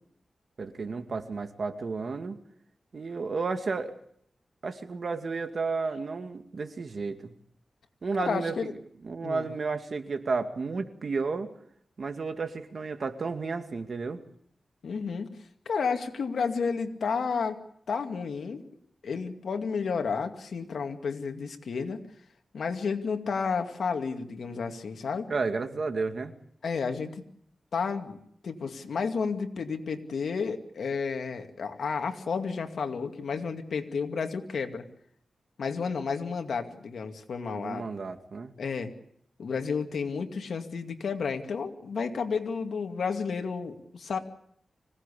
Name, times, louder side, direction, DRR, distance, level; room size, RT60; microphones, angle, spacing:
voice 1, 0.6-2.4 2.9-3.9 4.6-7.3 8.0-8.7 9.0-11.5 12.0-14.2 25.3-26.3 37.5-38.5, right 4 dB, 60° right, 7 dB, 2.3 m, -32 dB
voice 2, 8.2-8.7 9.2-9.5 14.8-15.4 15.7-17.6 17.9-18.6 19.0-22.0 22.5-25.3 26.6-27.2 27.7-34.8 35.6-37.9 38.6-38.9 39.4-44.2, left 5 dB, 85° left, 5 dB, 2.3 m, -31 dB
25.5 x 18.0 x 8.5 m, 0.68 s
wide cardioid pair, 95°, 0 cm